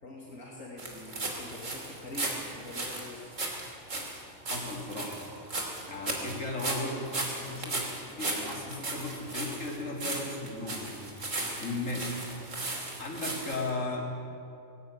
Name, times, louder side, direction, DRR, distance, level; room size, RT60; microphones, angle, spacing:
voice 1, 0.0-3.3 11.4-11.6 11.9-12.1, left 1 dB, 90° left, -3 dB, 3.0 m, -45 dB
sound 1, 0.8-13.7, right 2 dB, 75° right, 3.3 m, -36 dB
voice 2, 4.5-5.2 5.9-7.9 8.2-12.1 13.0-14.1, left 2 dB, 75° left, -1 dB, 3.8 m, -36 dB
18.5 x 17.0 x 8.7 m, 2.5 s
omnidirectional pair, 1.3 m